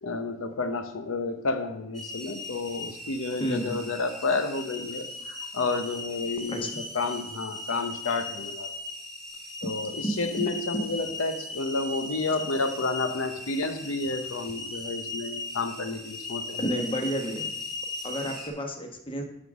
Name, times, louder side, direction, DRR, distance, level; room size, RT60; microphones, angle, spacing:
voice 1, 0.0-6.7 6.9-8.7 9.6-16.6, left 3 dB, 90° left, 8 dB, 0.8 m, -30 dB
sound 1, 1.9-18.5, left 2 dB, ahead, 1.5 m, -38 dB
voice 2, 3.4-3.8 6.5-6.7 10.0-10.2 16.6-17.5 18.0-19.2, equal, 25° left, 4 dB, 1.1 m, -30 dB
9.7 x 3.7 x 6.1 m, 0.80 s
head